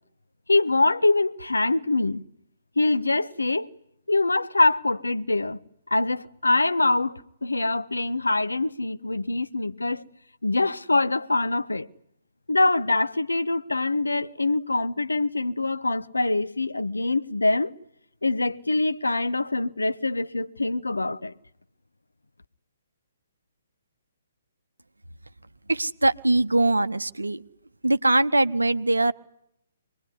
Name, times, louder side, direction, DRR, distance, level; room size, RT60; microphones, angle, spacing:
voice 1, 0.5-2.2 2.8-3.7 4.1-5.6 5.9-10.0 10.4-11.9 12.5-17.7 18.2-21.3, left 2 dB, 75° left, 1.0 m, -24 dB
voice 2, 25.7-27.4 27.8-29.1, right 2 dB, 75° right, 0.9 m, -22 dB
25.0 x 20.0 x 9.8 m
figure-of-eight pair, 130°, 0 cm